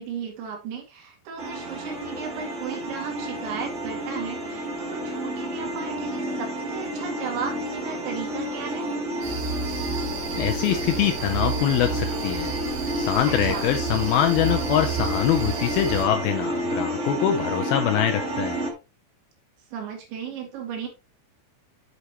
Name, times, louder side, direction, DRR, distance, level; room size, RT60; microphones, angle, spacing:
voice 1, 0.0-8.9 13.3-13.6 19.7-20.9, right 6 dB, 85° right, 2 dB, 4.7 m, -35 dB
sound 1, 1.4-18.7, equal, 50° right, 0.8 m, -30 dB
sound 2, 9.2-16.1, right 7 dB, 65° right, 3.6 m, -31 dB
voice 2, 10.4-12.5 12.9-18.6, left 10 dB, 80° left, 6 dB, 2.2 m, -24 dB
8.3 x 7.9 x 3.0 m, 0.27 s
omnidirectional pair, 5.1 m